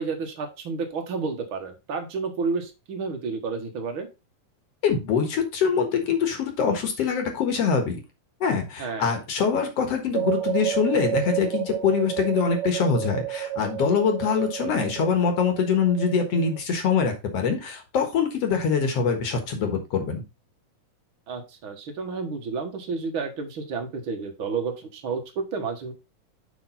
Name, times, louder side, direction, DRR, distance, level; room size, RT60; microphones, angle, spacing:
voice 1, 0.0-4.1 8.8-9.1 21.3-25.9, right 4 dB, 50° right, 4 dB, 1.9 m, -31 dB
voice 2, 4.8-8.0 8.4-20.2, left 6 dB, 55° left, 5 dB, 2.3 m, -24 dB
sound 1, 10.1-16.6, right 11 dB, 85° right, 2.6 m, -30 dB
7.5 x 5.7 x 4.0 m, 0.26 s
omnidirectional pair, 3.8 m